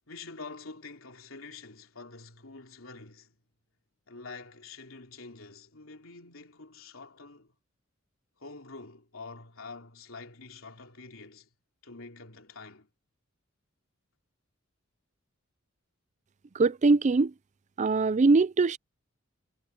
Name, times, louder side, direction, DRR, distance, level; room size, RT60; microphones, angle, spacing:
voice 1, 0.1-3.3 4.1-7.5 8.4-11.5 11.8-12.9, left 3 dB, 85° left, 3.3 m, -46 dB
voice 2, 16.5-17.3 17.8-18.8, right 3 dB, 35° right, 0.4 m, -22 dB
head